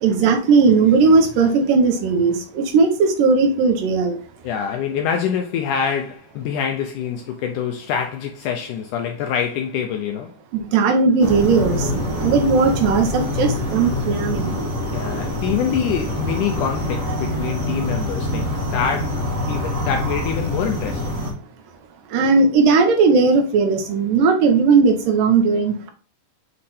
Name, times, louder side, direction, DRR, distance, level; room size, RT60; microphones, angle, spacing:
voice 1, 0.0-4.2 10.5-14.5 22.1-25.9, right 4 dB, 75° right, 2.4 m, -17 dB
voice 2, 4.4-10.3 14.9-21.1, left 7 dB, 80° left, 1.8 m, -25 dB
sound 1, 11.2-21.3, left 1 dB, 40° right, 1.2 m, -25 dB
7.6 x 3.2 x 4.2 m
omnidirectional pair, 4.2 m